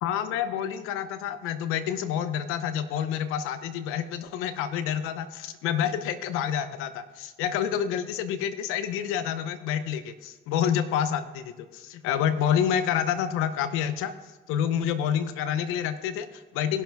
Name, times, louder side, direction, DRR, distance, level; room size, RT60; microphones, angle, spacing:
voice 1, 0.0-14.1 14.5-16.8, left 9 dB, 90° left, 10 dB, 0.8 m, -28 dB
17.5 x 5.9 x 3.4 m, 1.1 s
supercardioid pair, 75°, 21 cm